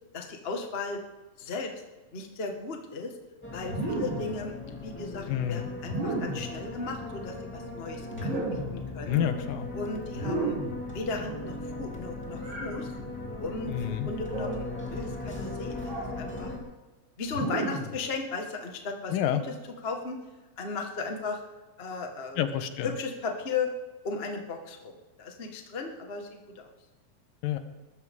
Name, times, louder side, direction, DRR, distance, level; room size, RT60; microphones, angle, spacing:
voice 1, 0.1-1.0 1.4-1.7 2.1-3.1 3.5-9.2 9.7-10.6 10.9-12.9 13.4-16.5 17.2-19.5 19.8-20.2 20.6-21.4 21.8-22.4 22.8-23.7 24.0-24.9 25.2-26.3 26.5-26.7, left 4 dB, 40° left, 2 dB, 0.8 m, -36 dB
sound 1, 3.4-16.6, left 2 dB, 5° left, 2.0 m, -38 dB
sound 2, 3.6-4.4 5.8-6.5 8.1-8.8 10.1-10.8 12.4-12.8 14.2-14.7 15.8-16.2 17.3-18.0, right 2 dB, 35° right, 5.0 m, -33 dB
voice 2, 5.3-5.7 9.1-9.7 13.7-14.1 19.1-19.4 22.4-22.9 27.4-27.6, left 11 dB, 80° left, 9 dB, 2.7 m, -28 dB
21.5 x 14.5 x 3.7 m, 1.2 s
omnidirectional pair, 4.0 m